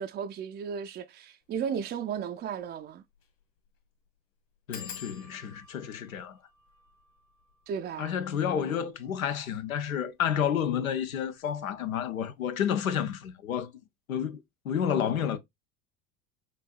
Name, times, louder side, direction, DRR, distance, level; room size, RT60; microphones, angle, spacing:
voice 1, 0.0-3.0 7.7-8.1, right 7 dB, 25° right, 0.4 m, -34 dB
sound 1, 1.5-1.7 2.2-2.3 2.5-2.6 3.1-3.4 3.6-3.7 4.7-10.0 10.7-11.2 11.5-11.9 12.1-12.2, left 7 dB, 50° left, 1.9 m, -50 dB
voice 2, 4.7-6.4 8.0-13.7 14.1-15.4, left 8 dB, 90° left, 0.7 m, -30 dB
5.4 x 2.6 x 2.3 m
hypercardioid pair, 75°, 41 cm